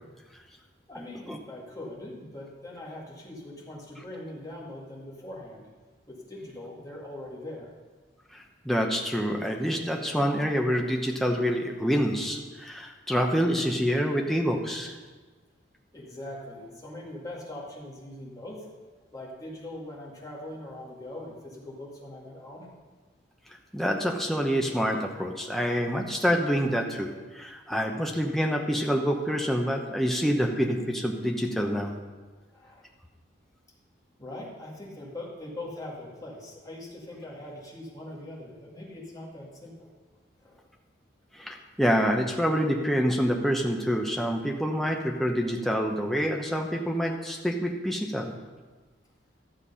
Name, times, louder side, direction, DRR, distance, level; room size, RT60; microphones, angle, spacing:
voice 1, 0.9-5.6 6.1-7.7 15.9-18.7 19.1-22.7 32.4-32.8 34.2-39.9 40.4-40.6, left 1 dB, 20° left, -4 dB, 2.1 m, -41 dB
voice 2, 8.3-15.0 23.7-31.9 41.3-48.4, equal, ahead, 1 dB, 0.9 m, -27 dB
12.5 x 6.8 x 5.6 m, 1.3 s
head